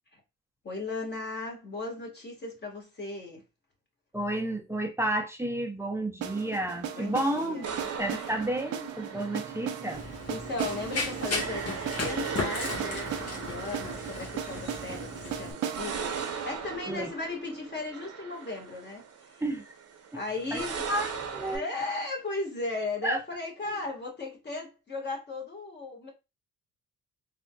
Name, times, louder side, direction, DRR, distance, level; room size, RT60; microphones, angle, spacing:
voice 1, 0.6-3.4 6.9-7.7 8.1-8.3 9.2-9.3 10.3-19.4 20.1-20.9 21.3-26.1, left 3 dB, 35° left, 1.5 m, -36 dB
voice 2, 4.1-10.0 16.9-17.1 19.4-19.6 20.5-20.6 20.9-21.6 23.0-23.2, right 1 dB, 10° right, 0.5 m, -31 dB
sound 1, 6.2-18.1, right 9 dB, 85° right, 0.6 m, -38 dB
sound 2, 7.6-21.6, right 6 dB, 55° right, 0.8 m, -39 dB
Run, 9.9-15.5, left 3 dB, 55° left, 1.2 m, -36 dB
3.7 x 2.4 x 2.2 m
cardioid pair, 90°, 30 cm